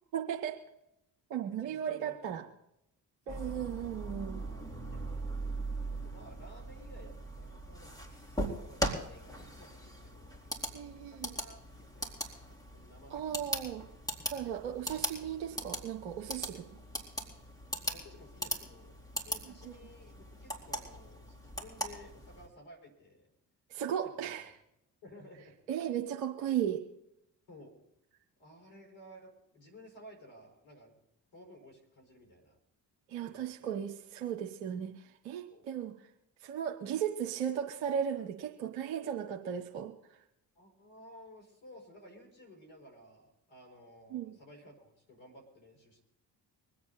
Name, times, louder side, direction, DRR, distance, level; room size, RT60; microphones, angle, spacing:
voice 1, 0.1-0.6 1.3-2.4 3.3-4.4 10.7-11.3 13.1-13.8 14.3-16.6 19.6-19.7 23.7-24.4 25.7-26.8 33.1-35.9 36.4-39.9 44.1-44.3, right 9 dB, 90° right, 2 dB, 1.0 m, -36 dB
voice 2, 1.5-2.5 3.2-3.9 4.9-5.2 5.9-10.4 11.0-13.4 14.2-14.7 16.4-16.6 17.9-23.3 24.0-24.5 25.0-25.6 27.5-27.7 28.4-30.9 31.3-32.6 33.2-33.7 35.5-35.6 40.5-46.0, left 1 dB, 70° left, 2 dB, 4.9 m, -55 dB
sound 1, 3.3-22.5, right 1 dB, 10° left, 3.8 m, -40 dB
24.5 x 8.6 x 4.1 m, 0.83 s
hypercardioid pair, 40°, 48 cm